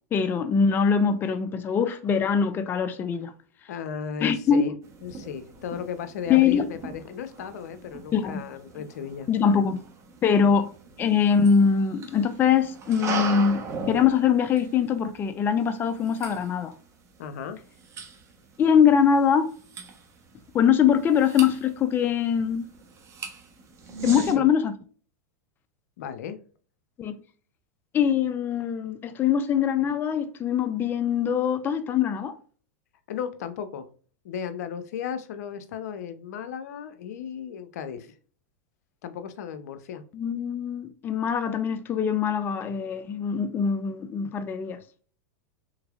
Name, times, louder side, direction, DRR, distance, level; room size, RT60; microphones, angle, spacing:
voice 1, 0.1-3.3 4.2-4.6 6.3-6.7 8.1-8.4 9.3-9.8 10.2-16.7 18.6-19.5 20.5-22.7 24.0-24.8 27.0-27.2 27.9-32.4 40.1-44.8, left 7 dB, 25° left, 0.4 m, -23 dB
voice 2, 3.7-4.7 5.0-9.3 17.2-17.6 24.2-24.5 26.0-26.4 33.1-33.9 34.2-38.1 39.0-40.0, left 7 dB, 75° left, 0.6 m, -35 dB
sound 1, 4.8-24.3, right 4 dB, 35° right, 1.0 m, -39 dB
3.5 x 3.1 x 2.3 m
hypercardioid pair, 115°, 9 cm